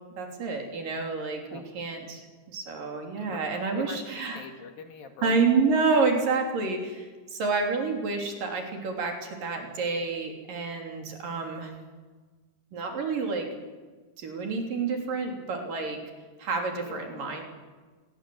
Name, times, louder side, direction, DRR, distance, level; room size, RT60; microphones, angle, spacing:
voice 1, 0.0-4.4 5.2-11.7 12.7-13.5 14.2-16.0 16.4-17.4, right 4 dB, 55° right, 2 dB, 4.8 m, -29 dB
voice 2, 3.7-5.4 16.8-17.4, left 6 dB, 65° left, 6 dB, 3.5 m, -43 dB
27.0 x 22.5 x 7.9 m, 1.4 s
omnidirectional pair, 4.8 m